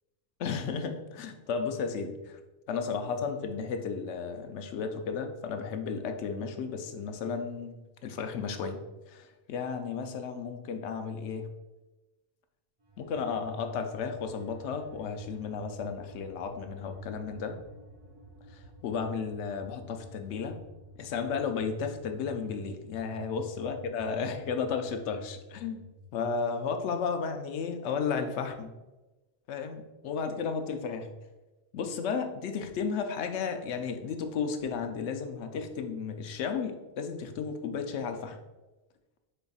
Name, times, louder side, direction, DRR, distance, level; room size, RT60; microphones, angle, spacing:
voice 1, 0.4-2.4 2.7-11.5 13.0-17.6 18.5-20.6 21.0-25.8 26.1-28.7 29.5-31.1 31.7-38.4, left 5 dB, 85° left, 6 dB, 0.9 m, -33 dB
sound 1, 12.8-26.1, left 2 dB, 35° right, 0.5 m, -50 dB
5.3 x 4.3 x 2.3 m, 1.1 s
omnidirectional pair, 1.1 m